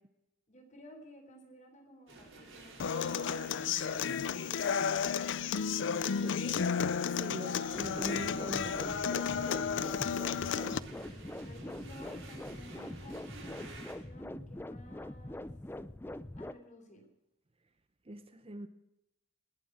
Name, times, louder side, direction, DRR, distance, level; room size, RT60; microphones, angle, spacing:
voice 1, 0.5-5.1 10.8-15.5 16.4-17.1, equal, 40° left, 3.9 m, -54 dB
sound 1, 2.1-13.9, right 3 dB, 80° right, 4.7 m, -53 dB
Human voice / Acoustic guitar, 2.8-10.8, left 6 dB, 65° left, 0.5 m, -32 dB
voice 2, 6.2-6.7 7.2-8.8 18.1-18.7, right 1 dB, 30° right, 0.8 m, -42 dB
sound 2, 7.7-16.5, left 1 dB, 10° left, 0.5 m, -44 dB
19.5 x 7.7 x 6.3 m
head